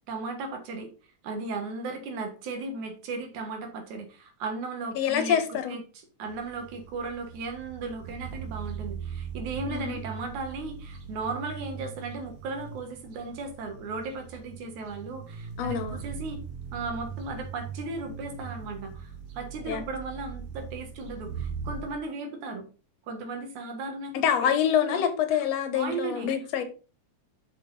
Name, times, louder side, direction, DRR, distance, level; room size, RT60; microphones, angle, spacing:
voice 1, 0.1-0.9 1.2-5.8 6.2-16.4 16.7-22.6 23.1-24.3 24.9-25.0 25.7-26.3, right 3 dB, 80° right, 2.9 m, -36 dB
voice 2, 5.0-5.8 9.7-10.0 15.6-16.0 19.6-19.9 24.1-26.6, left 8 dB, 70° left, 2.0 m, -26 dB
sound 1, 6.2-21.9, right 6 dB, 60° right, 2.0 m, -40 dB
6.6 x 5.8 x 4.0 m
omnidirectional pair, 3.4 m